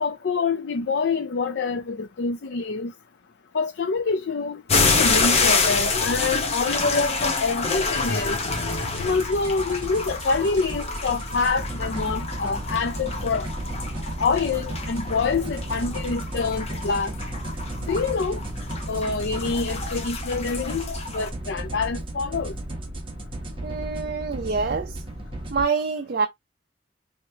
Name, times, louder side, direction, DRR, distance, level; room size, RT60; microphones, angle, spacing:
voice 1, 0.0-2.9 3.5-4.6 5.0-8.4 9.0-13.5 14.2-17.1 17.9-18.4 18.9-22.5, left 4 dB, 70° left, 0.5 m, -26 dB
sound 1, 4.7-21.3, left 4 dB, 35° left, 0.9 m, -27 dB
sound 2, 8.4-25.6, right 1 dB, 30° right, 1.1 m, -34 dB
voice 2, 23.6-25.0 25.5-26.3, right 5 dB, 55° right, 0.5 m, -26 dB
4.5 x 2.8 x 2.7 m
head